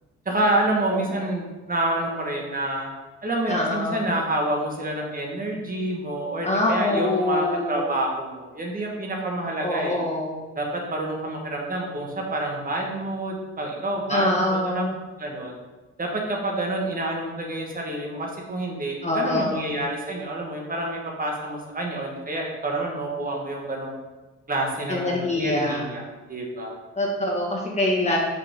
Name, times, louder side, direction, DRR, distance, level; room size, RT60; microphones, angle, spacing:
voice 1, 0.2-2.9 3.2-10.0 10.5-14.8 15.2-15.5 16.0-23.9 24.5-26.8, right 1 dB, 30° right, 0 dB, 1.6 m, -28 dB
voice 2, 3.5-4.0 6.4-7.9 9.6-10.4 14.1-14.9 19.0-19.7 24.9-25.9 27.0-28.2, left 1 dB, 20° left, -2 dB, 1.9 m, -24 dB
6.2 x 5.1 x 3.7 m, 1.2 s
cardioid pair, 90°, 30 cm